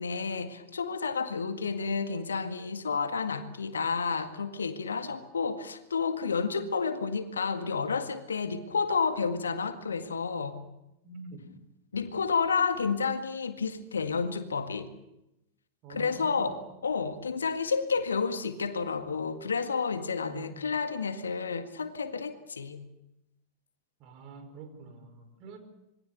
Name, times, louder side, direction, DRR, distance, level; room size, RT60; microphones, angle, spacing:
voice 1, 0.0-10.6 11.9-14.9 15.9-22.8, left 5 dB, 70° left, 9 dB, 1.9 m, -30 dB
voice 2, 11.0-11.6 15.8-16.5 20.3-20.6 24.0-25.6, right 4 dB, 40° right, 7 dB, 4.9 m, -46 dB
27.0 x 22.5 x 6.8 m, 0.87 s
figure-of-eight pair, 90°, 0 cm